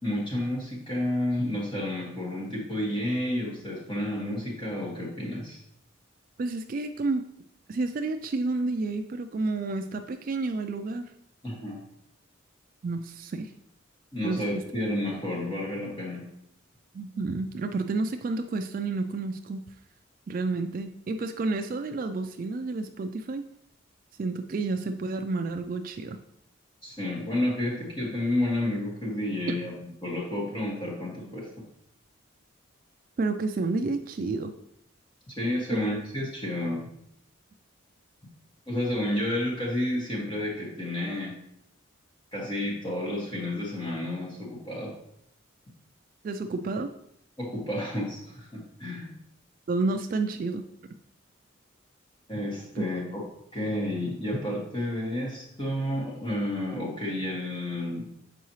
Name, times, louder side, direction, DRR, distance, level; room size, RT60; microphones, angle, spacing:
voice 1, 0.0-5.6 11.4-11.8 14.1-16.3 26.8-29.7 30.0-31.5 35.3-36.8 38.7-41.3 42.3-44.9 47.4-49.1 52.3-53.2 53.5-58.2, left 1 dB, 25° left, -4 dB, 1.7 m, -30 dB
voice 2, 6.4-7.2 7.7-11.1 12.8-13.5 14.2-14.4 16.9-19.6 20.3-23.4 24.2-26.2 29.5-29.6 33.2-34.5 35.7-35.8 46.2-46.9 49.7-50.6 52.8-52.9, right 3 dB, 45° right, 7 dB, 0.3 m, -30 dB
6.8 x 4.7 x 3.1 m, 0.74 s
head